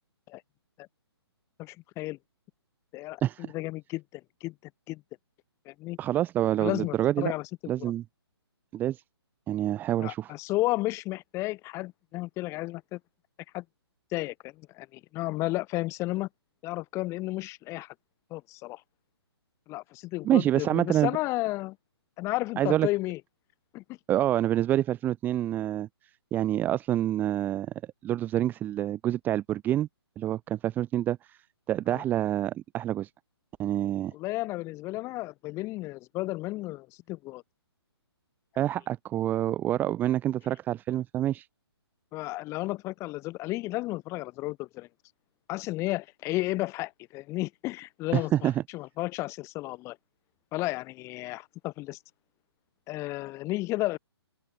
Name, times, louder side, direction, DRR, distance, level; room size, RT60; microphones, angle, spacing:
voice 1, 1.6-2.2 2.9-4.5 4.9-5.0 5.7-6.0 6.6-7.5 7.8-7.9 10.0-13.0 13.5-13.6 14.1-16.3 16.6-17.9 18.3-18.8 19.7-21.8 22.2-23.2 23.7-23.8 31.9-32.0 34.1-37.4 42.1-44.9 45.5-50.0 50.5-52.0 52.9-54.0, left 19 dB, 20° left, 6.3 m, -33 dB
voice 2, 3.2-3.5 6.0-7.3 7.7-8.0 8.7-9.0 9.5-10.3 20.2-21.1 22.6-22.9 24.1-25.9 26.3-27.7 28.0-29.9 30.2-31.4 31.7-33.1 33.6-34.1 38.5-41.5 48.1-48.6, right 12 dB, 15° right, 0.9 m, -27 dB
open air
hypercardioid pair, 150°, 14 cm